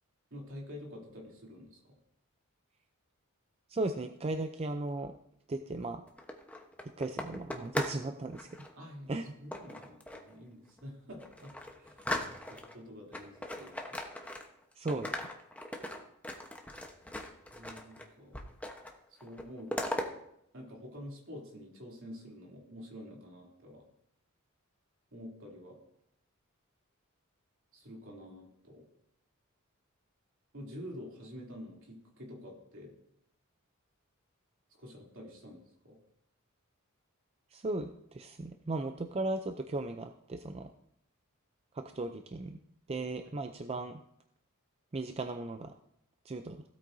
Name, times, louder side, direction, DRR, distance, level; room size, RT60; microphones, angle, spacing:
voice 1, 0.3-1.8 8.8-11.5 11.8-12.1 12.5-14.0 17.5-18.4 19.1-20.0 20.5-23.8 25.1-25.8 27.7-28.9 30.5-32.9 34.8-36.0, equal, 65° right, -2 dB, 3.0 m, -48 dB
voice 2, 3.7-5.1 5.5-6.0 7.0-8.5 9.1-9.3 14.8-15.2 37.5-40.7 41.7-42.6 42.9-44.0 44.9-45.7 46.2-46.6, right 2 dB, 30° right, 7 dB, 0.4 m, -36 dB
sound 1, 6.1-8.0 8.3-8.7 9.5-10.3 10.8-10.9 11.2-12.7 13.1-14.6 14.9-18.0 18.3-18.9 19.2-20.1, left 1 dB, 5° left, 1.0 m, -39 dB
16.0 x 8.6 x 2.7 m, 0.75 s
head